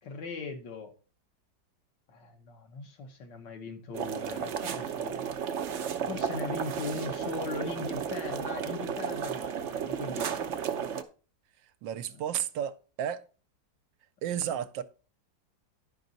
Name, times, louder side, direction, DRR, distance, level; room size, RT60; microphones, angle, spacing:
voice 1, 0.0-0.9 2.1-5.2 6.1-10.5 12.1-12.2, left 4 dB, 70° left, 1.9 m, -39 dB
sound 1, 3.9-11.0, right 7 dB, 65° right, 0.7 m, -33 dB
voice 2, 11.8-13.2 14.2-14.8, right 10 dB, 80° right, 1.3 m, -32 dB
11.0 x 5.4 x 4.0 m
omnidirectional pair, 2.0 m